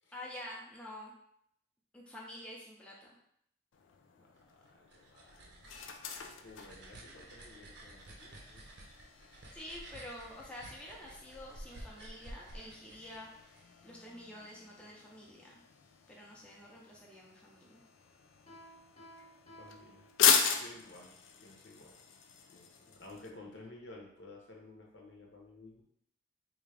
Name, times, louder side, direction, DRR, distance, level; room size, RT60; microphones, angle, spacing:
voice 1, 0.1-1.1 1.9-3.1 9.5-13.6 13.8-15.6 16.1-17.8, left 1 dB, 5° left, -4 dB, 0.5 m, -48 dB
sound 1, 3.7-23.3, left 7 dB, 90° left, 0.4 m, -38 dB
voice 2, 4.2-5.5 6.1-8.7 19.6-20.1 20.6-22.0 22.5-25.8, left 2 dB, 70° left, -1 dB, 0.8 m, -54 dB
sound 2, 4.7-13.6, right 1 dB, 60° right, 0.6 m, -52 dB
Piano, 18.5-20.8, equal, 35° left, 0.8 m, -56 dB
3.5 x 2.5 x 3.2 m, 0.72 s
head